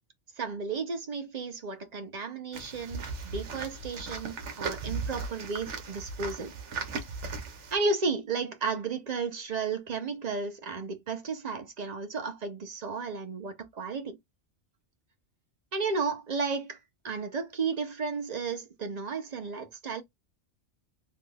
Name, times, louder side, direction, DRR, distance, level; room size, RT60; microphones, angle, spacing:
voice 1, 0.4-6.5 7.7-14.2 15.7-16.8 17.0-20.0, right 4 dB, 45° right, 0.7 m, -33 dB
sound 1, 2.5-7.8, right 5 dB, 85° right, 1.2 m, -37 dB
3.4 x 3.1 x 2.2 m
omnidirectional pair, 1.2 m